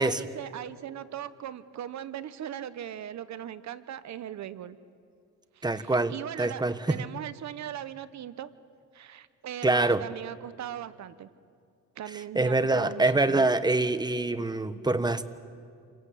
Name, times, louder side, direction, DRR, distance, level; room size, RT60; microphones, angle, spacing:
voice 1, 0.0-4.8 5.5-6.6 6.9-8.5 8.9-11.3 12.0-13.4, right 10 dB, 65° right, 14 dB, 1.0 m, -39 dB
voice 2, 5.6-7.0 9.6-10.0 12.3-15.2, right 2 dB, 15° right, 12 dB, 1.3 m, -25 dB
28.5 x 24.0 x 8.5 m, 2.3 s
cardioid pair, 90°, 30 cm